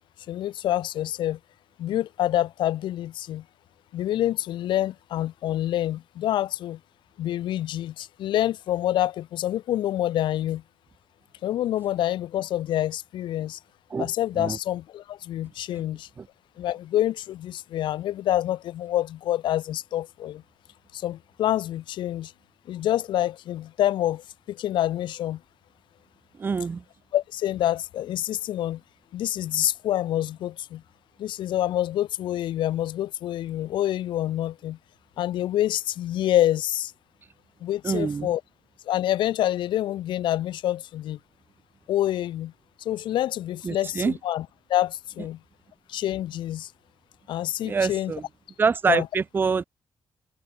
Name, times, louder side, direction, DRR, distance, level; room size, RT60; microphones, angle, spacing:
voice 1, 0.3-1.4 1.8-3.4 3.9-6.8 7.2-10.6 11.4-13.6 14.0-16.1 16.6-20.4 20.9-22.3 22.7-25.4 27.1-28.8 29.1-30.8 31.2-34.8 35.2-36.9 37.6-38.4 38.9-41.2 41.9-42.5 42.8-45.4 45.9-46.7 47.3-48.1 48.9-49.1, left 13 dB, 90° left, 0.5 m, -27 dB
voice 2, 26.4-26.8 37.8-38.3 43.6-44.1 47.6-48.2 48.6-49.6, right 5 dB, 25° right, 0.4 m, -25 dB
wide cardioid pair, 150°, 8 cm